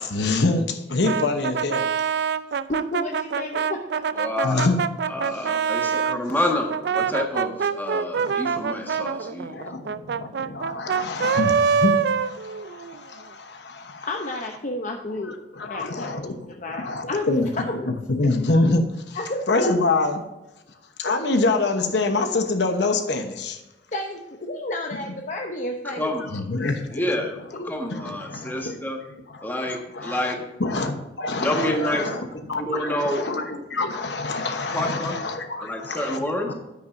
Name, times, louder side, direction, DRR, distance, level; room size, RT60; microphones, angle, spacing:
voice 1, 0.0-1.9 4.4-4.8 8.1-8.4 8.9-9.0 9.5-14.1 15.5-19.2 19.5-20.2 21.0-23.6 26.3-27.0 27.9-28.8 29.4-30.3 30.6-32.2 32.5-36.5, left 2 dB, 75° left, 6 dB, 1.0 m, -26 dB
Brass instrument, 1.0-6.2 6.7-13.0, right 6 dB, 65° right, 0.4 m, -25 dB
voice 2, 2.7-3.8 14.0-15.3 15.6-16.3 16.6-17.3 17.6-17.7 19.1-19.8 23.9-26.2 26.6-26.8, left 1 dB, 45° left, 2 dB, 0.8 m, -31 dB
voice 3, 4.2-4.7 5.1-9.6 25.8-26.3 26.9-27.3 27.6-29.0 29.4-30.4 31.3-32.0 32.5-33.2 34.7-35.1 35.6-36.5, left 1 dB, 10° left, 0 dB, 1.6 m, -28 dB
10.0 x 8.8 x 2.6 m, 1.0 s
head